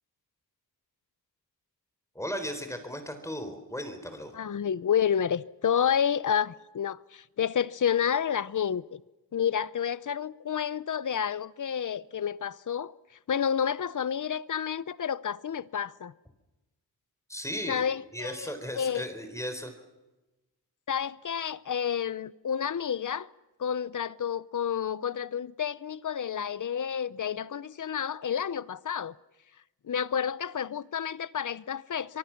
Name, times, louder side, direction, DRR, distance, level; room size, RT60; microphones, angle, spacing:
voice 1, 2.2-4.4 17.3-17.8 18.1-19.7, equal, 10° left, 4.0 m, -36 dB
voice 2, 4.3-9.0 9.3-12.9 13.3-16.1 17.7-19.1 20.9-23.3 23.6-29.1 29.8-32.2, left 8 dB, 55° left, 0.8 m, -30 dB
25.0 x 24.0 x 5.9 m
wide cardioid pair, 95°, 38 cm